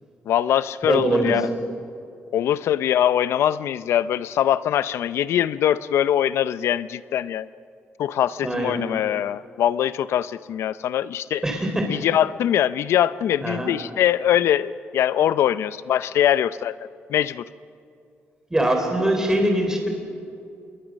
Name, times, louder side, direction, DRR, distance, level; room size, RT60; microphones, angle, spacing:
voice 1, 0.3-1.5 2.3-7.5 8.0-11.4 11.9-16.7 17.1-17.4, left 11 dB, 80° left, 16 dB, 0.6 m, -22 dB
voice 2, 0.8-1.4 8.4-8.8 11.4-11.9 13.4-13.7 18.5-19.9, right 1 dB, 15° right, 3 dB, 4.1 m, -22 dB
27.5 x 21.5 x 6.4 m, 2.5 s
cardioid pair, 85°, 4 cm